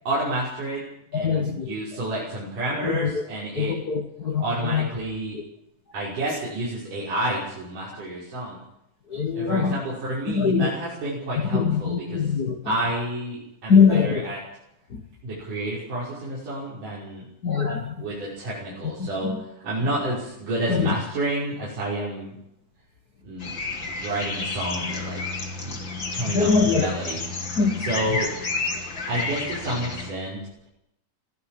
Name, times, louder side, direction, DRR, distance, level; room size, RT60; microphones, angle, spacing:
voice 1, 0.1-0.8 1.1-3.7 4.4-5.4 5.9-8.6 9.3-12.2 12.7-14.4 15.2-17.3 18.0-19.3 19.6-22.3 23.2-23.6 23.8-25.2 25.5-25.9 26.1-27.2 27.8-28.3 29.1-30.4, right 1 dB, 65° right, -8 dB, 7.5 m, -30 dB
voice 2, 1.1-1.8 2.8-3.2 3.5-4.9 5.3-5.4 7.9-8.0 9.1-9.8 10.3-10.7 11.5-12.6 13.7-14.3 14.9-15.0 17.4-18.0 19.0-19.4 20.7-20.9 26.2-26.9 27.6-28.2, left 5 dB, 70° left, 3 dB, 0.9 m, -23 dB
sound 1, 23.4-30.1, left 3 dB, 35° left, 2.9 m, -31 dB
20.0 x 17.0 x 7.7 m, 0.82 s
omnidirectional pair, 3.9 m